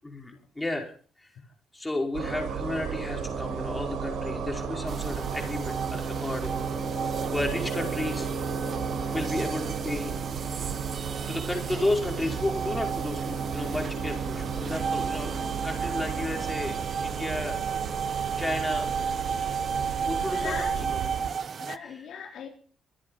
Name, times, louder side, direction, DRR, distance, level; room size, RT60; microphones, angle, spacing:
voice 1, 0.0-0.9 1.2-1.3 1.7-6.7 7.3-8.3 9.1-10.1 11.3-15.3 15.6-17.6 18.4-18.9 20.0-21.0 21.8-22.0, left 2 dB, 15° left, 5.3 m, -32 dB
sound 1, 2.1-21.3, right 6 dB, 90° right, 5.5 m, -33 dB
sound 2, 4.9-21.8, right 6 dB, 50° right, 0.8 m, -34 dB
voice 2, 20.3-20.9 21.6-22.5, left 7 dB, 70° left, 3.8 m, -39 dB
25.0 x 8.6 x 5.7 m
cardioid pair, 90°, 0 cm